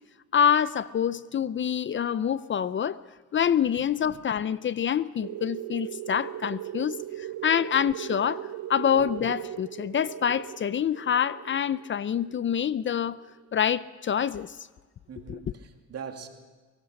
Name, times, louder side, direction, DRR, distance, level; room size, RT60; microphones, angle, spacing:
voice 1, 0.3-3.0 3.3-13.2 13.5-14.7 15.3-15.4, left 8 dB, 40° left, 0.5 m, -26 dB
sound 1, 5.2-13.5, right 12 dB, 70° right, 0.7 m, -39 dB
voice 2, 9.0-9.3 15.1-16.3, right 7 dB, 55° right, 2.5 m, -42 dB
23.5 x 18.0 x 6.5 m
cardioid pair, 90°, 30 cm